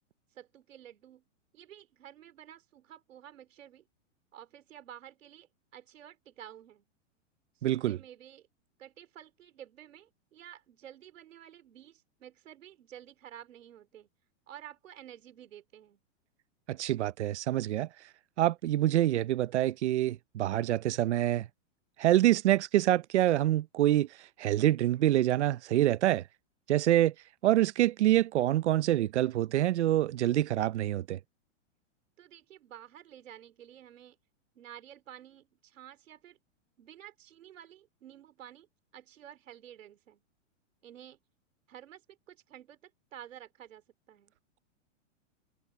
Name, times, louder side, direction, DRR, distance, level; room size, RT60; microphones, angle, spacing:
voice 1, 0.3-1.2 1.5-3.8 4.3-6.8 7.5-8.5 8.8-14.1 14.5-16.0 32.2-34.2 34.5-36.4 36.8-38.7 38.9-40.2 40.8-41.2 41.7-44.3, right 11 dB, 90° right, 3.3 m, -51 dB
voice 2, 7.6-8.0 16.7-17.9 18.4-21.5 22.0-24.1 24.4-26.2 26.7-27.1 27.4-31.2, right 14 dB, 65° right, 0.8 m, -26 dB
supercardioid pair, 175°, 37 cm